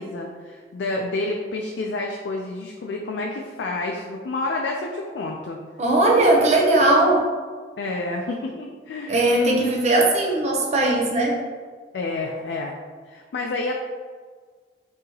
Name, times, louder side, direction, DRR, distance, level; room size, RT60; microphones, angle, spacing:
voice 1, 0.0-5.6 6.1-6.3 7.8-10.1 11.9-12.7 13.0-13.7, left 2 dB, 80° left, 0 dB, 0.4 m, -29 dB
voice 2, 5.8-7.3 9.1-11.4, right 2 dB, 40° right, -1 dB, 0.6 m, -19 dB
2.8 x 2.7 x 3.8 m, 1.5 s
head